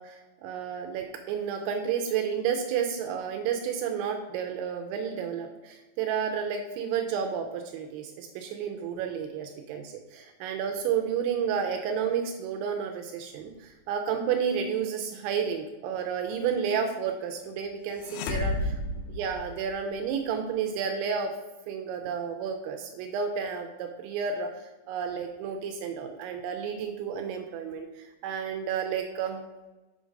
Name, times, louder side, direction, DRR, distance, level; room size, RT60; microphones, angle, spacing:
voice 1, 0.0-18.7 19.1-21.3 21.7-24.5 24.9-29.4, right 7 dB, 85° right, 4 dB, 2.9 m, -31 dB
sound 1, 18.0-20.0, left 2 dB, 80° left, 2.6 m, -32 dB
7.8 x 3.8 x 5.1 m, 1.1 s
omnidirectional pair, 5.5 m